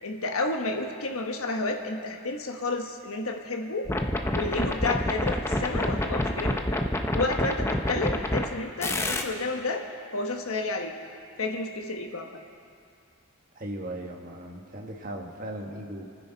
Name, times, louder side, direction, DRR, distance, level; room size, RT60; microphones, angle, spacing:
voice 1, 0.0-3.9 4.3-6.8 7.1-9.8 10.1-10.9 11.4-12.4, left 3 dB, 75° left, 3 dB, 1.3 m, -31 dB
sound 1, 3.9-8.4 8.8-9.2, left 1 dB, 10° left, 0.6 m, -27 dB
voice 2, 13.5-16.1, right 1 dB, 40° right, 1 dB, 1.4 m, -37 dB
29.5 x 9.8 x 4.0 m, 2.4 s
head